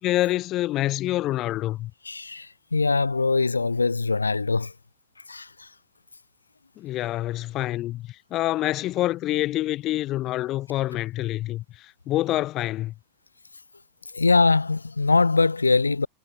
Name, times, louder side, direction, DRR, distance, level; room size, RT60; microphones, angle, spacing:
voice 1, 0.0-1.9 6.8-12.9, left 15 dB, 35° left, 4.3 m, -26 dB
voice 2, 2.1-4.7 5.3-5.7 14.1-16.1, left 3 dB, 80° left, 1.9 m, -22 dB
figure-of-eight pair, 90°, 0 cm